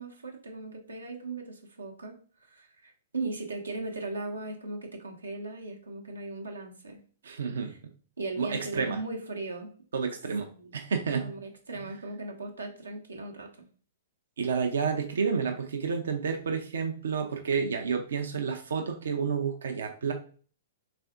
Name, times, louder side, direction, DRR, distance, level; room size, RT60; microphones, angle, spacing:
voice 1, 0.0-7.0 7.6-7.8 8.2-9.7 10.5-10.7 11.1-13.7, right 2 dB, 85° right, 2 dB, 0.9 m, -38 dB
voice 2, 7.2-7.8 8.4-9.0 9.9-11.3 14.4-20.1, right 5 dB, 70° right, 4 dB, 0.6 m, -30 dB
3.5 x 2.6 x 3.5 m, 0.42 s
figure-of-eight pair, 115°, 0 cm